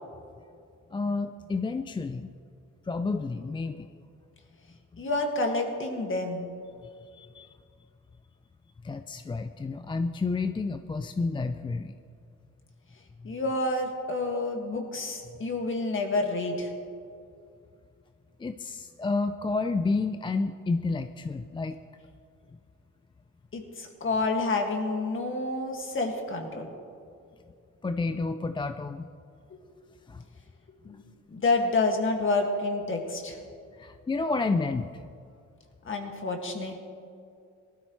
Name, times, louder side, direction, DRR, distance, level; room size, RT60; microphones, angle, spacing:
voice 1, 0.9-2.3 2.9-3.9 7.0-7.5 8.8-11.9 18.4-21.8 27.8-29.1 30.1-30.2 33.8-34.9, left 3 dB, 15° left, 9 dB, 0.4 m, -30 dB
voice 2, 5.0-6.5 13.2-16.7 23.5-26.7 29.5-29.6 30.8-31.0 31.3-33.4 35.8-36.8, left 2 dB, 40° left, 3 dB, 2.0 m, -29 dB
18.5 x 13.0 x 3.2 m, 2.4 s
cardioid pair, 90°, 30 cm